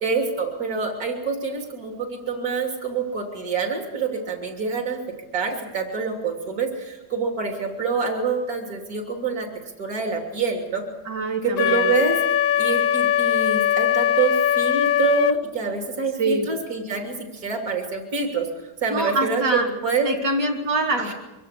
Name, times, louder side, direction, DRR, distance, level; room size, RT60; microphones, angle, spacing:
voice 1, 0.0-5.0 5.3-9.5 9.8-10.8 11.4-12.2 12.6-20.1 21.0-21.1, right 4 dB, 55° right, 2 dB, 3.5 m, -26 dB
voice 2, 11.1-11.9 16.2-16.5 18.9-19.7 20.1-21.1, right 2 dB, 85° right, 0 dB, 3.7 m, -24 dB
Wind instrument woodwind instrument, 11.6-15.4, left 10 dB, 60° left, 1.2 m, -21 dB
24.5 x 16.5 x 8.3 m, 1.1 s
omnidirectional pair, 1.8 m